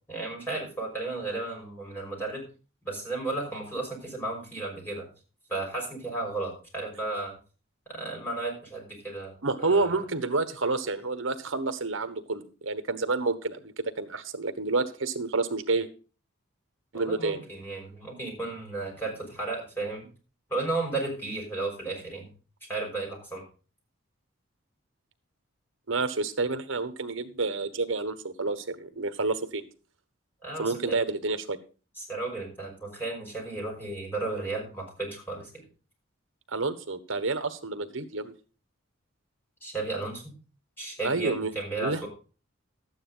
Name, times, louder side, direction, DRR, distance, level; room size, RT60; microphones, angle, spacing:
voice 1, 0.1-2.4 2.8-5.1 5.5-7.3 7.9-9.9 16.9-20.1 20.5-22.3 22.7-23.4 30.4-31.0 32.0-35.7 39.6-40.3 40.8-42.1, right 2 dB, 10° left, -1 dB, 5.7 m, -34 dB
voice 2, 9.4-15.9 16.9-17.4 25.9-29.6 30.6-31.6 36.5-38.3 41.0-41.5 41.8-42.0, right 3 dB, 70° right, 11 dB, 1.2 m, -29 dB
12.5 x 9.3 x 3.9 m, 0.36 s
head